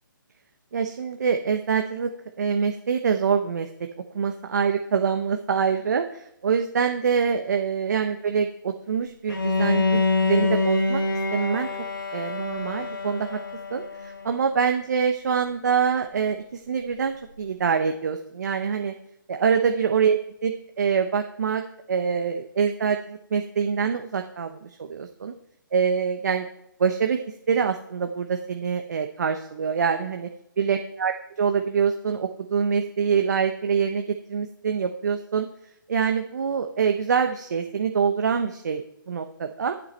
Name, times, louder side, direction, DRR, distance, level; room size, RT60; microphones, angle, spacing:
voice 1, 0.7-2.1 2.4-3.7 4.1-11.0 11.3-11.7 12.1-13.4 13.7-18.9 19.3-21.6 21.9-25.3 25.7-26.4 26.8-27.2 27.5-30.3 30.6-31.1 31.4-35.5 35.9-39.7, right 6 dB, 55° right, 6 dB, 1.0 m, -25 dB
Bowed string instrument, 9.3-14.3, left 3 dB, 85° left, 3.1 m, -25 dB
13.0 x 8.2 x 4.4 m, 0.80 s
hypercardioid pair, 165°, 11 cm